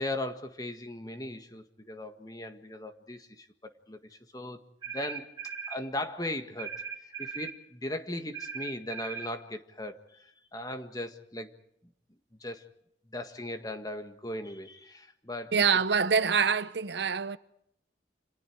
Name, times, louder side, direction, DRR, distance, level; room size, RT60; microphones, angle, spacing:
voice 1, 0.0-4.6 4.9-5.3 5.7-11.5 12.4-12.6 13.1-15.7, left 1 dB, 20° left, 1.7 m, -38 dB
sound 1, 4.8-5.8 6.6-7.6 8.3-9.3, right 6 dB, 25° right, 4.2 m, -39 dB
voice 2, 15.5-17.4, right 6 dB, 75° right, 0.9 m, -25 dB
29.5 x 27.0 x 4.7 m
head